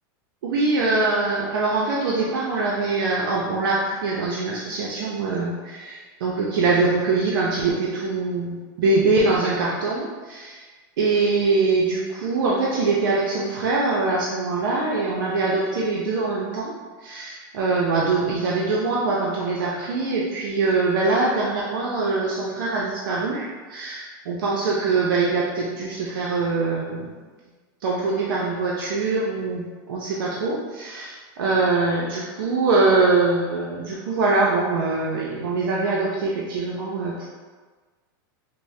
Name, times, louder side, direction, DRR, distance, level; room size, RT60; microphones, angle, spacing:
voice 1, 0.4-10.6 11.0-16.7 17.0-27.1 27.8-37.3, right 3 dB, 85° right, -4 dB, 0.6 m, -23 dB
5.3 x 2.1 x 2.7 m, 1.4 s
supercardioid pair, 130°, 11 cm